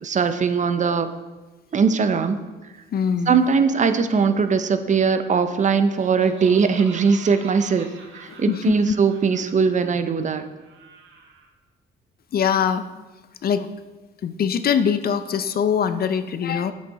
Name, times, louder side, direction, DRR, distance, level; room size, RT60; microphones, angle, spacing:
voice 1, 0.0-1.1 1.7-2.4 3.3-7.9 8.1-10.4, right 5 dB, 40° right, 10 dB, 0.6 m, -20 dB
voice 2, 2.9-3.4 8.3-8.9 12.3-12.9 13.4-13.7 14.2-16.7, left 7 dB, 50° left, 11 dB, 0.5 m, -22 dB
Laughter, 5.9-11.5, right 4 dB, 75° right, 1.4 m, -44 dB
8.2 x 6.3 x 4.2 m, 1.2 s
cardioid pair, 90°, 20 cm